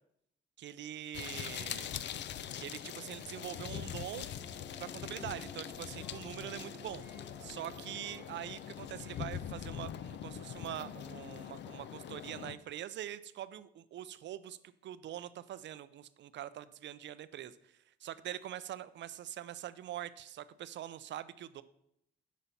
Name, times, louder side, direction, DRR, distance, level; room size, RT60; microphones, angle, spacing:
voice 1, 0.6-1.9 2.6-4.3 4.8-7.0 7.4-21.6, right 12 dB, 65° right, 15 dB, 0.5 m, -44 dB
sound 1, 1.1-12.6, left 9 dB, 65° left, 0.5 m, -43 dB
sound 2, 4.4-9.4, right 1 dB, 10° right, 1.1 m, -56 dB
8.3 x 5.2 x 5.8 m, 0.77 s
cardioid pair, 90°, 20 cm